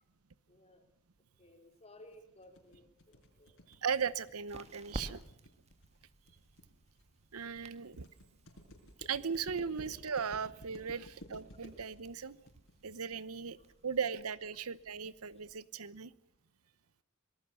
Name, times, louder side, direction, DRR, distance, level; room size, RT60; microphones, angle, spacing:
voice 1, 0.5-0.8 1.4-3.6, left 1 dB, 30° left, 4 dB, 3.8 m, -58 dB
sound 1, 2.1-14.1, equal, 65° left, 5.2 m, -55 dB
sound 2, 3.2-15.6, right 1 dB, 30° right, 1.9 m, -53 dB
voice 2, 3.8-5.2 7.3-8.1 9.0-12.4 12.8-13.6 13.8-16.1, right 6 dB, 85° right, 17 dB, 0.9 m, -37 dB
25.5 x 19.0 x 7.0 m, 0.67 s
head